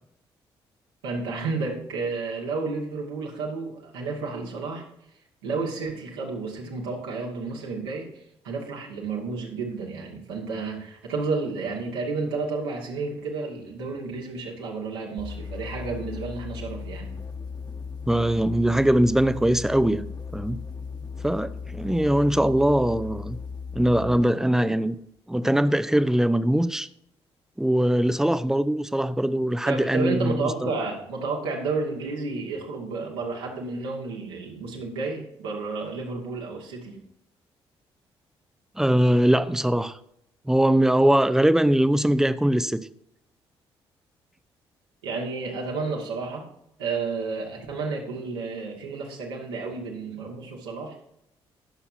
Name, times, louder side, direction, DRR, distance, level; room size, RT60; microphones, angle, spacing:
voice 1, 1.0-4.8 5.4-8.1 8.4-17.1 29.6-37.0 45.0-46.4 46.8-50.9, right 4 dB, 75° right, -2 dB, 1.8 m, -31 dB
sound 1, 15.2-24.3, left 5 dB, 30° left, 1.4 m, -36 dB
voice 2, 18.1-20.1 20.3-20.6 21.2-23.4 23.7-25.0 25.3-26.9 27.6-30.7 38.8-40.0 40.5-42.9, right 1 dB, 5° right, 14 dB, 0.6 m, -21 dB
19.0 x 7.0 x 2.7 m, 0.76 s
figure-of-eight pair, 40°, 14 cm